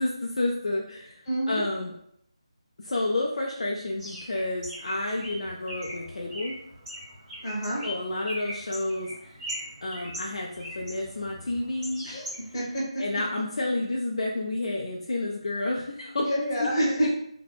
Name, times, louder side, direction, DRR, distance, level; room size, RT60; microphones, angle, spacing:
voice 1, 0.0-1.2 1.5-1.9 2.8-6.6 7.8-9.4 9.8-12.1 13.0-16.3 16.6-16.7 17.0-17.1, left 2 dB, 70° left, -2 dB, 0.3 m, -30 dB
voice 2, 1.3-1.6 7.4-7.8 12.0-12.6 16.2-17.1, equal, 35° left, -7 dB, 0.8 m, -27 dB
Bird, 4.0-12.7, equal, 20° right, 1.4 m, -41 dB
2.6 x 2.0 x 2.3 m, 0.73 s
figure-of-eight pair, 160°, 3 cm